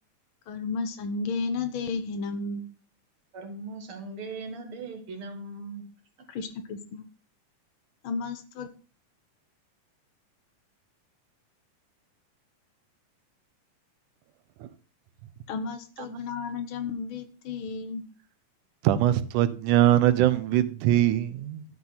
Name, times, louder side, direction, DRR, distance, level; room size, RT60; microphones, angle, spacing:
voice 1, 0.5-2.7 6.3-7.0 8.0-8.7 15.5-18.0, left 4 dB, 85° left, 8 dB, 1.1 m, -33 dB
voice 2, 3.3-5.8 6.2-6.3, right 3 dB, 50° right, 4 dB, 2.2 m, -39 dB
voice 3, 18.8-21.6, right 13 dB, 75° right, 13 dB, 2.2 m, -22 dB
12.0 x 5.5 x 5.8 m, 0.37 s
omnidirectional pair, 3.7 m